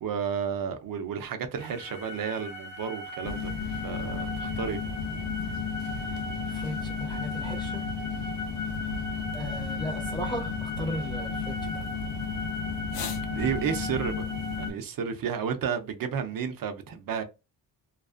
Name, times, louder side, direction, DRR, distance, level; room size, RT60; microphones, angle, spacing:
voice 1, 0.0-4.8 13.0-14.1 14.6-17.2, right 7 dB, 55° right, 0.6 m, -32 dB
sound 1, 1.6-14.7, left 1 dB, 25° right, 0.8 m, -39 dB
sound 2, 3.2-14.7, left 6 dB, 85° left, 0.7 m, -33 dB
voice 2, 6.5-7.9 9.3-11.6, equal, 10° left, 0.3 m, -36 dB
2.5 x 2.3 x 2.4 m
cardioid pair, 100°, 42 cm